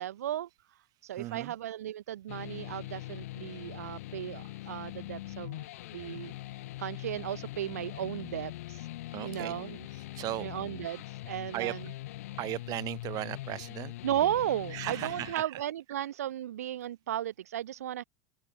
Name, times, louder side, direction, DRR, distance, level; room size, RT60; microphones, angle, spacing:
voice 1, 0.0-5.6 5.9-6.3 6.8-8.9 9.2-11.9 14.0-18.0, right 12 dB, 85° right, 0.9 m, -35 dB
voice 2, 1.2-1.5 9.1-9.6 10.1-10.5 11.5-11.7 12.4-13.9 14.7-15.6, right 17 dB, 50° right, 4.6 m, -36 dB
sound 1, 2.3-15.3, left 16 dB, 75° left, 2.4 m, -42 dB
open air
hypercardioid pair, 95°, 8 cm